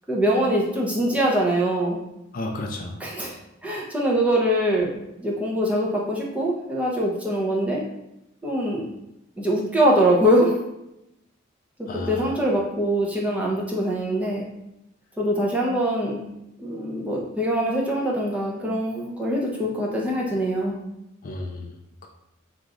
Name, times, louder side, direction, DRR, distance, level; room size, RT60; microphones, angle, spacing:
voice 1, 0.1-2.0 3.0-3.3 3.6-4.9 5.2-7.8 8.4-8.8 9.4-10.5 12.1-14.5 15.2-16.2 16.6-20.7, equal, 5° right, -3 dB, 0.5 m, -23 dB
voice 2, 2.3-3.0 11.9-12.3 21.2-21.7, left 2 dB, 45° left, 3 dB, 0.3 m, -32 dB
3.0 x 2.4 x 3.7 m, 0.87 s
head